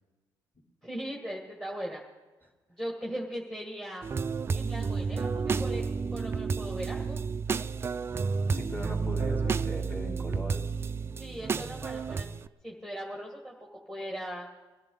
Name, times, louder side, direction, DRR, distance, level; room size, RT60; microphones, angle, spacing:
voice 1, 0.8-2.0 2.8-4.1 4.5-5.9 6.1-7.2 11.2-12.3 12.6-14.5, equal, 5° left, -1 dB, 1.7 m, -39 dB
sound 1, 4.0-12.5, right 5 dB, 30° right, 0.4 m, -31 dB
voice 2, 8.5-10.7, left 1 dB, 25° left, 0 dB, 3.1 m, -38 dB
21.5 x 12.5 x 3.8 m, 1.2 s
cardioid pair, 110°, 8 cm